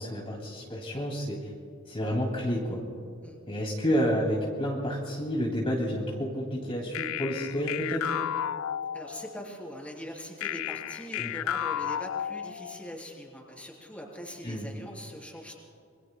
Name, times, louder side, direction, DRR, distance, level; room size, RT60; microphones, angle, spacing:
voice 1, 0.0-1.5 1.9-2.8 3.5-8.1 11.2-11.3 14.4-14.7, equal, 30° left, -3 dB, 2.3 m, -30 dB
sound 1, 6.9-9.5 10.4-12.9, left 10 dB, 80° left, 0.3 m, -33 dB
voice 2, 8.9-15.5, equal, 5° left, -1 dB, 3.4 m, -42 dB
27.0 x 24.0 x 2.2 m, 2.4 s
head